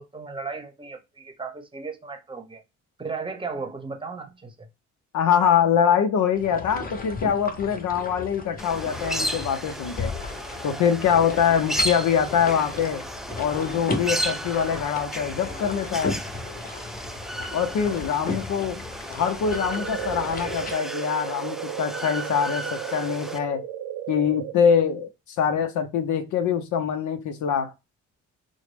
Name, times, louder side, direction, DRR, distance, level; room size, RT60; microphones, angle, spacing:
voice 1, 0.0-2.6 3.0-4.5 18.6-18.7, right 4 dB, 15° right, 0.8 m, -35 dB
voice 2, 5.1-10.1 10.6-13.1 13.4-16.2 17.5-18.8 19.1-23.6 24.1-25.1 25.4-27.7, left 7 dB, 75° left, 0.6 m, -24 dB
sound 1, 6.4-20.7, left 3 dB, 30° left, 0.8 m, -35 dB
sound 2, 8.6-23.4, equal, ahead, 0.3 m, -34 dB
sound 3, 19.5-24.5, right 11 dB, 85° right, 0.6 m, -35 dB
3.9 x 2.0 x 3.3 m
cardioid pair, 90°, 30 cm